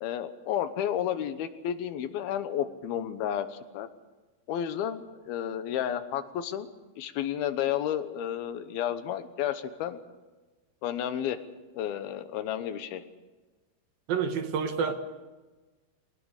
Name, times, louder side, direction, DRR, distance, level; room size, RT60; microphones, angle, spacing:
voice 1, 0.0-3.9 4.5-6.7 7.0-10.0 10.8-11.4 11.7-13.0, left 10 dB, 75° left, 10 dB, 2.9 m, -31 dB
voice 2, 14.1-14.9, right 6 dB, 70° right, 7 dB, 3.1 m, -28 dB
23.5 x 19.0 x 6.6 m, 1.2 s
omnidirectional pair, 4.5 m